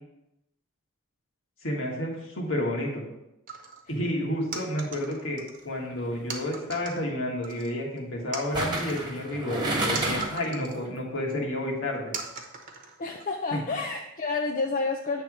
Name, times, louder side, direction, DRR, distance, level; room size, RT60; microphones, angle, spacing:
voice 1, 1.6-3.0 3.9-12.1 13.5-13.6, left 1 dB, 65° left, -1 dB, 1.7 m, -30 dB
sound 1, 3.5-3.8 4.5-5.7 6.3-7.0 7.4-8.0 8.3-10.8 11.3-11.4 12.1-13.2, right 5 dB, 40° right, 1.0 m, -39 dB
sound 2, 5.9-6.2 8.5-10.5 10.9-11.0, right 1 dB, 20° right, 1.4 m, -30 dB
voice 2, 13.0-15.2, left 3 dB, 40° left, 2 dB, 0.5 m, -29 dB
8.6 x 3.5 x 6.0 m, 0.89 s
head